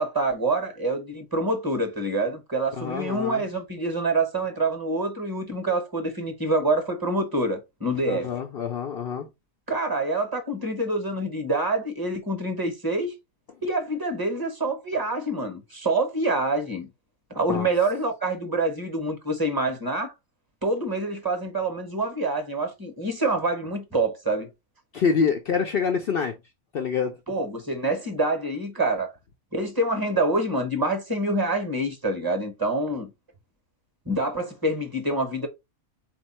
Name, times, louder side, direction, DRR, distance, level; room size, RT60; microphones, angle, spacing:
voice 1, 0.0-8.3 9.7-13.1 13.6-16.9 17.3-20.1 20.6-24.5 27.3-29.1 29.5-33.1 34.1-35.5, right 2 dB, 20° right, 0.8 m, -26 dB
voice 2, 2.8-3.4 8.1-9.3 17.5-17.7 24.9-26.4 26.7-27.2, left 6 dB, 70° left, 0.5 m, -26 dB
4.3 x 2.7 x 4.1 m
omnidirectional pair, 1.6 m